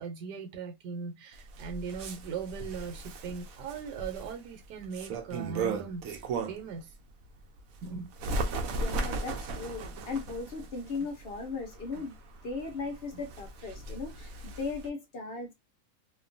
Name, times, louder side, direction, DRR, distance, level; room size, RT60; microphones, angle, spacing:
voice 1, 0.0-6.2 6.5-6.9 7.8-8.1 11.9-12.0, right 6 dB, 85° right, 1.4 m, -39 dB
Bird, 1.3-6.8 7.2-14.9, right 3 dB, 70° right, 0.9 m, -37 dB
voice 2, 8.7-12.2 12.4-15.5, left 4 dB, 55° left, 0.6 m, -37 dB
2.8 x 2.3 x 2.5 m
omnidirectional pair, 1.7 m